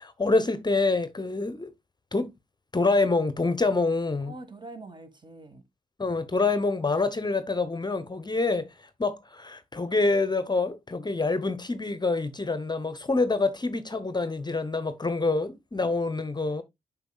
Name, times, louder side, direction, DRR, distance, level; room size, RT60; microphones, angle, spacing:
voice 1, 0.0-1.7 2.1-2.3 2.7-4.3 6.0-16.6, left 3 dB, 25° left, 0.9 m, -26 dB
voice 2, 4.3-5.6, right 2 dB, 30° right, 1.8 m, -45 dB
7.9 x 5.8 x 2.4 m
supercardioid pair, 45°, 16 cm